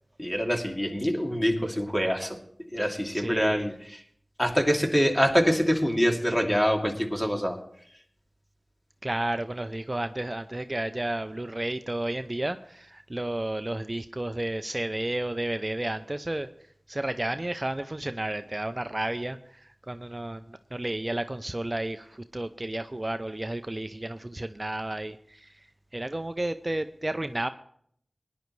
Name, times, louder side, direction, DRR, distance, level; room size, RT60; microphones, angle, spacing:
voice 1, 0.2-2.4 2.7-4.0 4.4-7.6, equal, 15° left, 1 dB, 2.5 m, -25 dB
voice 2, 3.1-3.7 9.0-16.5 16.9-25.5 25.9-27.5, right 1 dB, 35° right, 10 dB, 0.5 m, -32 dB
19.5 x 10.5 x 3.2 m, 0.66 s
wide cardioid pair, 40°, 0 cm